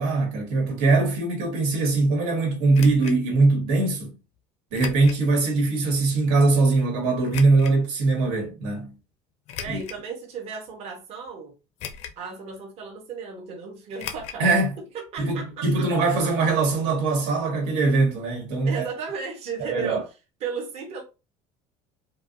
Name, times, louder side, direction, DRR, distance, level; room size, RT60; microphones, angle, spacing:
voice 1, 0.0-4.1 4.7-9.0 9.7-9.8 14.4-14.7 15.2-18.9 19.6-20.0, right 3 dB, 90° right, 1.7 m, -22 dB
sound 1, 2.7-3.2 4.7-5.2 5.8-5.9 7.3-7.8 9.5-10.1 10.7-10.8 11.8-12.3 12.5-12.6 14.0-14.4 14.7-14.8 15.1-15.2, left 8 dB, 45° left, 0.5 m, -37 dB
voice 2, 9.6-11.5 12.2-14.5 14.9-16.1 18.6-20.0 20.4-21.0, right 5 dB, 45° right, 1.1 m, -35 dB
4.6 x 2.3 x 2.6 m
cardioid pair, 160°, 15 cm